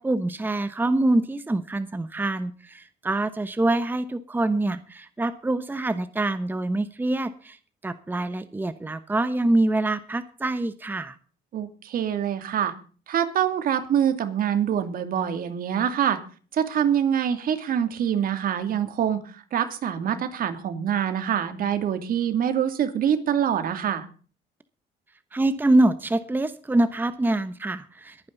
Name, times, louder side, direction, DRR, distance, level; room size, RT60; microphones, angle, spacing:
voice 1, 0.0-7.6 7.8-11.2 25.3-28.3, right 2 dB, 10° right, 12 dB, 1.0 m, -25 dB
voice 2, 11.5-12.7 13.1-16.2 16.5-24.1, right 9 dB, 60° right, 8 dB, 2.7 m, -25 dB
22.0 x 9.6 x 4.0 m, 0.40 s
cardioid pair, 110°, 17 cm